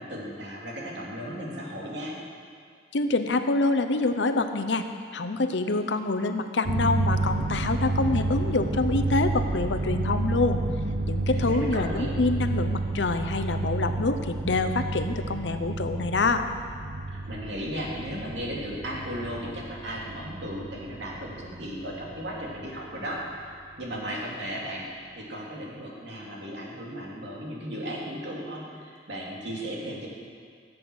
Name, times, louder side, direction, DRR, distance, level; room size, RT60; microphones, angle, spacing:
voice 1, 0.0-2.1 11.3-12.1 17.1-30.1, equal, 80° right, -3 dB, 2.7 m, -36 dB
voice 2, 2.9-4.9 5.1-10.6 11.1-16.5, left 3 dB, 85° left, 8 dB, 0.8 m, -26 dB
sound 1, 6.6-22.7, right 2 dB, 65° right, 0.6 m, -30 dB
15.0 x 7.8 x 6.3 m, 2.1 s
head